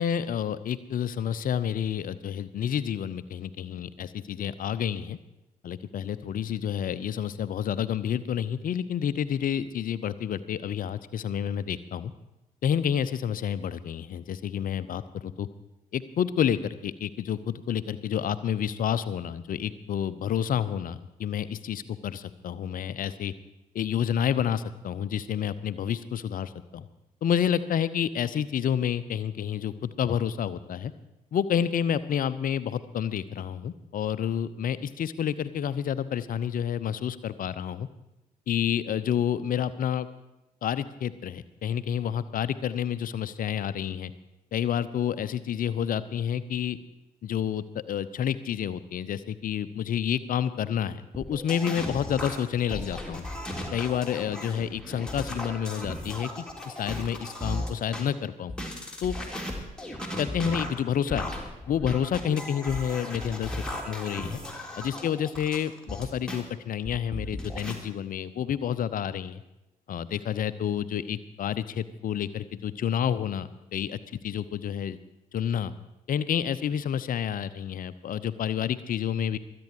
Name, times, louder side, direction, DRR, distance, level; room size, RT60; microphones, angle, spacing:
voice 1, 0.0-5.2 5.6-12.1 12.6-15.5 15.9-23.3 23.7-26.9 27.2-30.9 31.3-37.9 38.5-40.1 40.6-44.1 44.5-46.8 47.2-53.2 53.7-58.5 59.0-59.2 60.2-61.3 61.7-63.5 63.8-64.4 64.8-69.4 69.9-75.0 75.3-75.7 76.1-79.4, left 9 dB, 45° left, 15 dB, 0.8 m, -29 dB
sound 1, 51.1-58.0 58.5-66.4 66.8-67.7, left 1 dB, 5° left, 3.1 m, -36 dB
24.0 x 8.7 x 4.8 m, 0.92 s
figure-of-eight pair, 40°, 20 cm